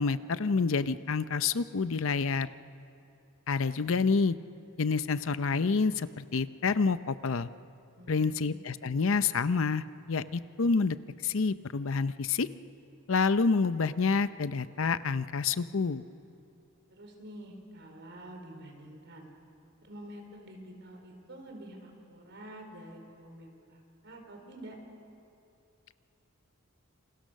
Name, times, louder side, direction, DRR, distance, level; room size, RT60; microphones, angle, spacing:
voice 1, 0.0-2.5 3.5-4.4 4.8-7.5 8.1-11.0 11.2-12.5 13.1-16.0, left 4 dB, 60° left, 13 dB, 0.6 m, -28 dB
voice 2, 8.0-8.6 16.9-19.3 19.8-24.8, right 1 dB, 55° right, 2 dB, 4.8 m, -48 dB
28.0 x 28.0 x 6.5 m, 2.7 s
head